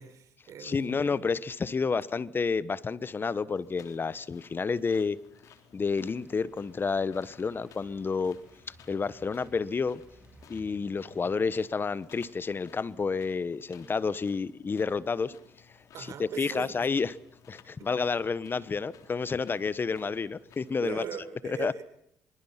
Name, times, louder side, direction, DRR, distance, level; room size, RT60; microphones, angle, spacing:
voice 1, 0.0-1.1 1.9-2.1 15.9-16.9 17.8-17.9 20.8-21.8, right 7 dB, 70° right, 10 dB, 4.4 m, -40 dB
voice 2, 0.6-5.2 5.7-8.4 8.7-10.0 10.5-15.3 16.2-17.1 17.5-21.0 21.4-21.7, left 5 dB, 40° left, 18 dB, 1.1 m, -30 dB
sound 1, 3.5-21.0, left 7 dB, 75° left, 3.5 m, -58 dB
sound 2, 6.0-11.4, right 2 dB, 20° right, 3.4 m, -58 dB
25.0 x 24.0 x 5.8 m, 0.73 s
supercardioid pair, 65°, 6 cm